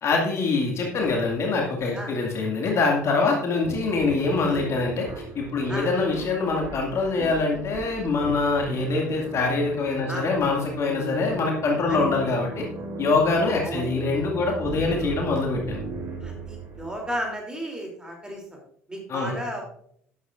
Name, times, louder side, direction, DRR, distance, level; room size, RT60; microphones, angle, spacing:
voice 1, 0.0-5.1 5.3-12.7 13.0-15.8 19.1-19.4, left 3 dB, 40° left, 0 dB, 2.2 m, -24 dB
sound 1, 3.6-17.3, right 3 dB, 35° right, 3.0 m, -36 dB
voice 2, 14.7-15.2 16.2-18.6 18.9-19.6, equal, 10° right, 0 dB, 3.1 m, -34 dB
12.5 x 10.0 x 2.5 m, 0.66 s
figure-of-eight pair, 60°, 7 cm